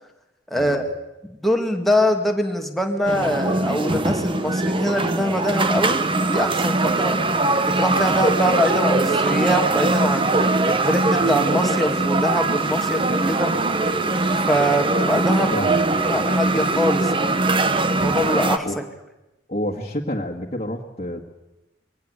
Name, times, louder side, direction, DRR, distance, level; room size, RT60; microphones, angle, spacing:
voice 1, 0.5-0.8 1.4-7.2 7.7-10.3 10.6-13.5 14.5-15.5 16.1-17.4 18.0-18.8, equal, ahead, 2 dB, 2.2 m, -23 dB
sound 1, 3.1-18.6, right 2 dB, 30° right, 1.0 m, -21 dB
voice 2, 15.5-16.2 18.6-18.8 19.5-21.2, left 1 dB, 35° left, -1 dB, 1.9 m, -29 dB
22.5 x 17.5 x 8.1 m, 0.94 s
head